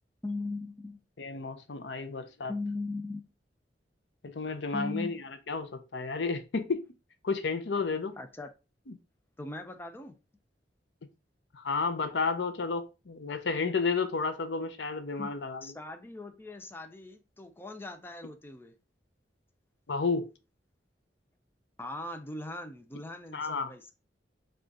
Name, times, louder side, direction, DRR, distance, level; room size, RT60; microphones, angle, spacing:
voice 1, 0.2-1.0 2.5-3.2 4.7-5.2 8.2-8.5 9.4-10.2 15.2-15.3 15.6-18.8 21.8-23.9, left 2 dB, 15° left, 0.5 m, -39 dB
voice 2, 1.2-2.5 4.2-6.8 7.2-8.1 8.9-9.0 11.5-15.7 19.9-20.3 23.3-23.7, left 4 dB, 75° left, 0.6 m, -32 dB
5.0 x 2.4 x 3.8 m
head